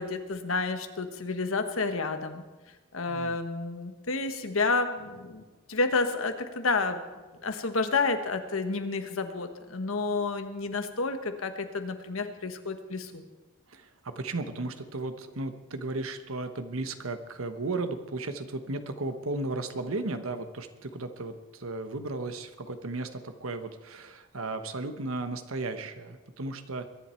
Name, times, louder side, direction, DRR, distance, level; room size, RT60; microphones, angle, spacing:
voice 1, 0.0-2.4 2.9-5.4 5.7-7.0 7.4-13.2, left 3 dB, 75° left, 8 dB, 1.3 m, -30 dB
voice 2, 13.7-26.9, right 2 dB, 80° right, 9 dB, 1.2 m, -35 dB
22.5 x 10.5 x 4.5 m, 1.2 s
head